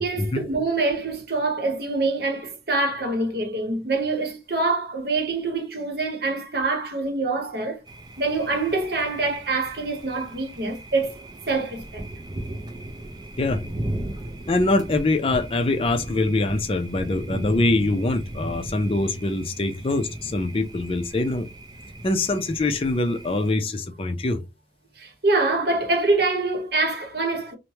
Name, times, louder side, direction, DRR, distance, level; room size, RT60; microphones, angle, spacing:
voice 1, 0.0-7.8 8.2-11.1 11.5-12.0 25.0-27.6, right 3 dB, 60° right, 0.9 m, -25 dB
Thunder, 7.9-23.5, right 1 dB, 25° right, 0.4 m, -36 dB
voice 2, 14.5-21.5 22.0-24.4, left 2 dB, 30° left, 0.5 m, -24 dB
3.1 x 2.1 x 2.9 m
head